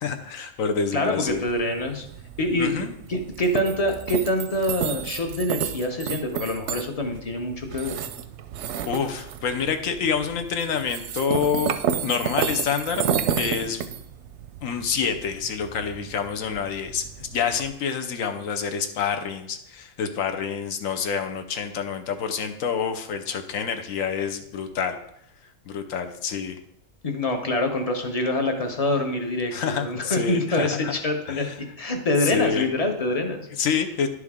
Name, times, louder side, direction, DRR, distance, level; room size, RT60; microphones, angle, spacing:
voice 1, 0.0-1.4 2.6-2.9 8.8-11.8 12.0-13.0 13.3-13.8 14.6-25.0 25.7-26.6 29.5-30.9 31.3-31.6 32.2-32.7 33.6-34.1, left 6 dB, 75° left, 6 dB, 1.1 m, -27 dB
voice 2, 0.9-2.1 2.4-7.9 27.0-33.5, left 1 dB, 35° left, 4 dB, 0.8 m, -25 dB
sound 1, 1.3-17.7, right 8 dB, 65° right, 0.7 m, -32 dB
11.0 x 4.8 x 3.6 m, 0.75 s
omnidirectional pair, 1.4 m